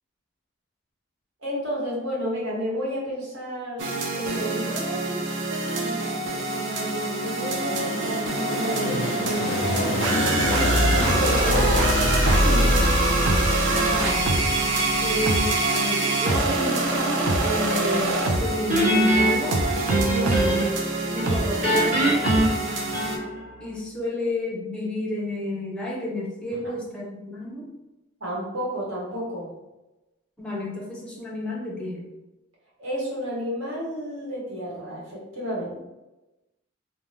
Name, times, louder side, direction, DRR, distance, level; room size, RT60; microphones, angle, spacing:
voice 1, 1.4-5.2 5.6-12.0 12.4-12.8 20.0-20.4 21.1-22.5 26.5-26.6 28.2-29.6 32.8-35.8, equal, 75° right, -6 dB, 1.2 m, -32 dB
sound 1, 3.8-23.2, right 2 dB, 60° right, 0.5 m, -25 dB
sound 2, 6.7-15.6, left 1 dB, 50° left, 0.4 m, -25 dB
voice 2, 13.7-14.3 15.0-19.6 23.6-27.7 30.4-32.0, left 1 dB, 5° left, -4 dB, 0.6 m, -31 dB
Guitar, 18.7-20.8 21.2-23.5, right 1 dB, 40° right, 1.3 m, -23 dB
2.7 x 2.1 x 3.2 m, 1.0 s
head